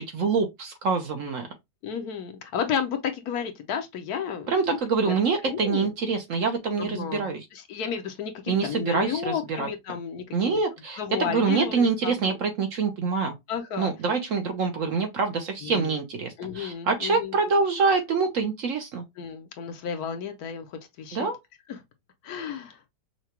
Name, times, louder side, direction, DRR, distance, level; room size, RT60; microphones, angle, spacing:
voice 1, 0.0-1.5 4.5-7.4 8.5-9.7 10.3-13.3 13.8-19.0 21.1-21.4, right 4 dB, 60° right, 0.9 m, -25 dB
voice 2, 1.8-4.8 5.0-5.1 5.5-5.9 6.8-7.2 7.5-10.6 11.0-12.4 13.5-13.9 15.6-15.9 16.4-17.3 19.2-21.3 21.7-21.8 22.2-22.9, left 7 dB, 70° left, 1.1 m, -32 dB
5.8 x 2.2 x 2.8 m
omnidirectional pair, 1.9 m